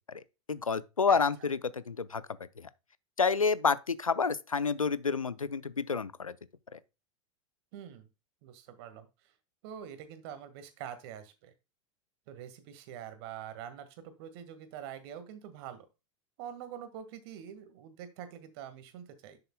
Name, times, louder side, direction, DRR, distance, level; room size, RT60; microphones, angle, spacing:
voice 1, 0.5-2.2 2.6-2.7 3.2-6.3 6.7-6.8, left 5 dB, 85° left, 0.6 m, -29 dB
voice 2, 7.7-8.1 8.4-9.1 9.6-11.5 12.3-15.9 16.4-19.4, right 9 dB, 50° right, 1.7 m, -45 dB
11.0 x 6.7 x 2.2 m
figure-of-eight pair, 85°, 17 cm